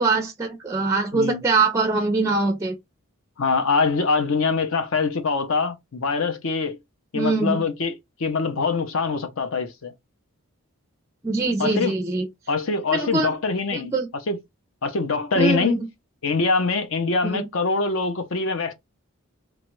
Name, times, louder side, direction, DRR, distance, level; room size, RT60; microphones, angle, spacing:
voice 1, 0.0-2.8 7.1-7.6 11.2-12.3 12.9-13.3 13.7-14.1 15.4-15.9 17.2-17.5, right 3 dB, 15° right, 0.4 m, -23 dB
voice 2, 3.4-6.8 7.1-9.9 11.6-11.9 12.5-13.9 14.3-14.4 14.8-15.8 16.2-18.7, left 4 dB, 60° left, 0.6 m, -24 dB
3.0 x 2.3 x 3.0 m
head